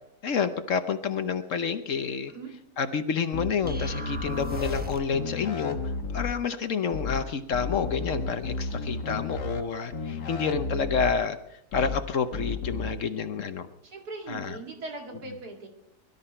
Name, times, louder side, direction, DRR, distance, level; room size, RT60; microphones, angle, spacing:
voice 1, 0.2-2.3 2.8-5.8 6.1-13.7 14.3-14.6, left 6 dB, 55° left, 10 dB, 1.1 m, -29 dB
sound 1, 3.3-4.8 5.1-6.3 6.9-7.2 7.5-9.6 9.9-11.1 11.7-12.0 12.3-12.9, left 4 dB, 80° left, 1.9 m, -33 dB
sound 2, 3.7-5.3, left 1 dB, 10° right, 0.7 m, -37 dB
voice 2, 13.8-15.7, right 3 dB, 65° right, 1 dB, 2.8 m, -40 dB
21.5 x 12.5 x 4.4 m, 0.81 s
omnidirectional pair, 1.8 m